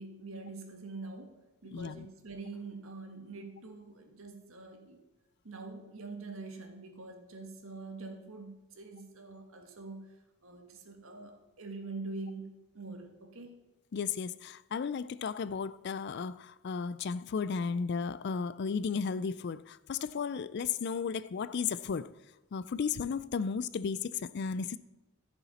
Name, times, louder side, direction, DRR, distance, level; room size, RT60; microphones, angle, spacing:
voice 1, 0.0-5.0 5.4-10.2 10.4-13.6, right 3 dB, 70° right, 1.5 m, -45 dB
voice 2, 1.7-2.1 13.9-22.1 22.5-24.8, left 6 dB, 50° left, 0.4 m, -34 dB
14.5 x 7.0 x 4.2 m
head